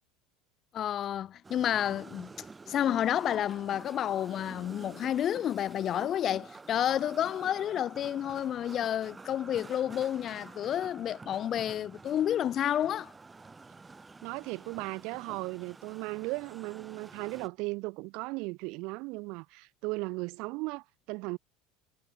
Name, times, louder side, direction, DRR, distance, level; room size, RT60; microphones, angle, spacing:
voice 1, 0.7-2.3 2.7-13.1, left 10 dB, 30° left, 0.3 m, -30 dB
sound 1, 1.4-17.5, right 4 dB, 10° right, 2.6 m, -49 dB
voice 2, 14.2-21.4, right 26 dB, 55° right, 0.8 m, -36 dB
cardioid pair, 170°, 0 cm